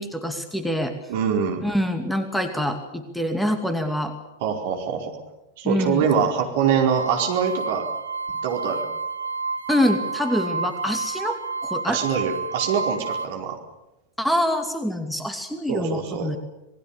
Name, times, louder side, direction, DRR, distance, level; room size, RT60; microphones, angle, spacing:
voice 1, 0.0-0.9 1.6-4.1 5.6-6.1 9.7-12.0 14.2-16.4, equal, ahead, 7 dB, 2.5 m, -25 dB
voice 2, 1.1-1.7 4.4-5.2 5.6-7.9 8.4-8.8 11.9-13.6 15.7-16.3, right 7 dB, 50° right, 2 dB, 4.7 m, -24 dB
sound 1, 6.9-13.3, right 4 dB, 70° right, 1.4 m, -30 dB
27.0 x 20.5 x 7.0 m, 0.96 s
figure-of-eight pair, 90°, 0 cm